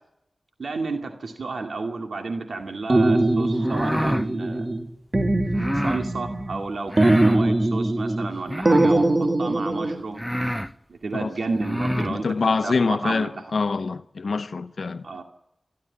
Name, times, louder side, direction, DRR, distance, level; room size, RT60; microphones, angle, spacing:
voice 1, 0.6-4.7 5.8-10.2 10.9-13.3 15.0-15.2, right 3 dB, 85° right, 2.2 m, -31 dB
sound 1, 2.9-4.8 5.1-6.6 7.0-8.3 8.7-10.0, right 2 dB, 45° right, 2.4 m, -21 dB
sound 2, 3.5-4.3 5.5-6.0 6.9-7.4 8.4-9.0 9.7-9.8 10.1-10.7 11.5-12.1, equal, ahead, 0.8 m, -28 dB
voice 2, 12.0-15.1, left 4 dB, 75° left, 0.7 m, -25 dB
29.5 x 12.5 x 8.5 m
cardioid pair, 50°, 0 cm